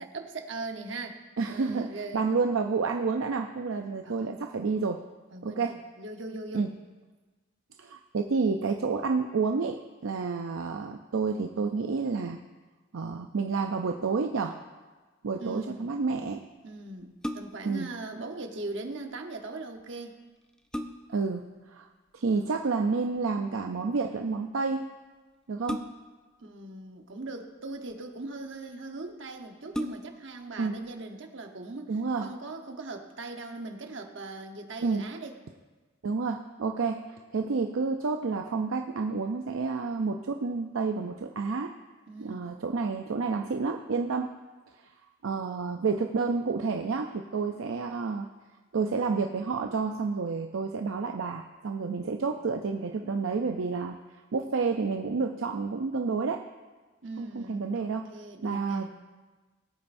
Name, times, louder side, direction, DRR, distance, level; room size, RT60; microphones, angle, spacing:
voice 1, 0.0-1.2 1.5-2.2 4.0-4.4 5.3-6.7 15.4-15.9 16.6-20.1 26.4-35.4 42.1-42.5 57.0-58.9, right 2 dB, 65° right, 4 dB, 1.1 m, -40 dB
voice 2, 1.4-5.0 5.4-5.8 6.5-6.7 7.8-12.4 12.9-14.6 15.2-16.5 17.6-17.9 21.1-21.9 22.1-24.9 25.5-25.9 30.6-30.7 31.9-32.3 34.8-35.0 36.0-41.7 42.2-44.3 45.2-48.3 48.7-54.0 54.3-56.4 57.2-58.1 58.4-59.0, right 4 dB, 80° right, 4 dB, 0.5 m, -30 dB
sound 1, 17.0-17.8 19.8-19.9 20.4-21.3 22.8-23.2 25.7-26.3 27.2-27.9 28.7-28.8 29.1-29.2 29.7-30.3 30.8-30.9, equal, 5° left, 0.4 m, -37 dB
20.0 x 8.7 x 2.6 m, 1.3 s
head